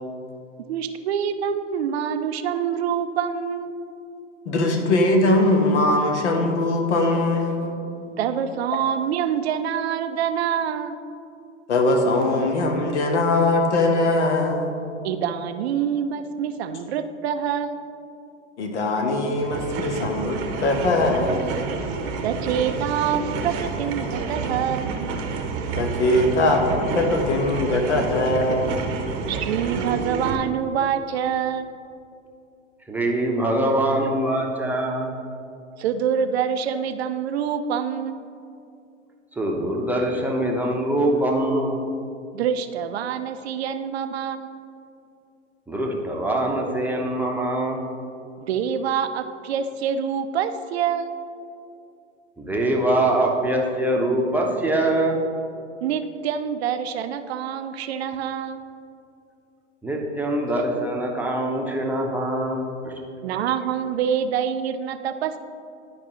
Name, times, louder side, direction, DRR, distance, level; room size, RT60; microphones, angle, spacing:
voice 1, 0.7-3.8 8.2-11.0 15.0-17.8 22.2-24.9 29.3-31.7 35.8-38.2 42.3-44.5 48.5-51.2 55.8-58.6 63.2-65.4, right 8 dB, 55° right, 10 dB, 0.5 m, -26 dB
voice 2, 4.5-7.8 11.7-14.8 18.6-21.4 25.8-26.6 26.9-28.9, left 2 dB, 65° left, 3 dB, 1.1 m, -21 dB
sound 1, 19.4-30.3, right 5 dB, 35° right, 0.8 m, -29 dB
voice 3, 32.9-35.1 39.4-41.8 45.7-47.8 52.4-55.2 59.8-62.9, right 1 dB, 5° right, -1 dB, 0.8 m, -23 dB
11.0 x 5.2 x 3.1 m, 2.6 s
figure-of-eight pair, 90°, 37 cm